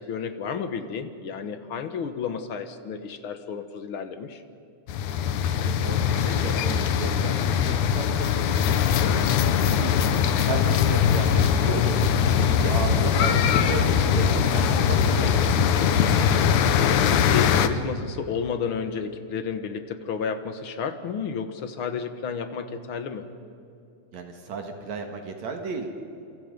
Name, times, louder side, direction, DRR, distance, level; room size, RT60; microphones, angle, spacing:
voice 1, 0.0-4.4 10.2-10.7 12.3-12.5 15.8-23.2, left 6 dB, 55° left, 9 dB, 1.9 m, -32 dB
sound 1, 4.9-17.7, left 8 dB, 85° left, 2.5 m, -22 dB
voice 2, 5.5-15.3 24.1-25.9, right 4 dB, 65° right, 4 dB, 2.9 m, -34 dB
sound 2, 11.3-11.4 11.8-12.8 13.3-14.4 14.7-16.9, equal, 40° right, 7.9 m, -30 dB
28.0 x 27.5 x 5.3 m, 2.7 s
omnidirectional pair, 3.4 m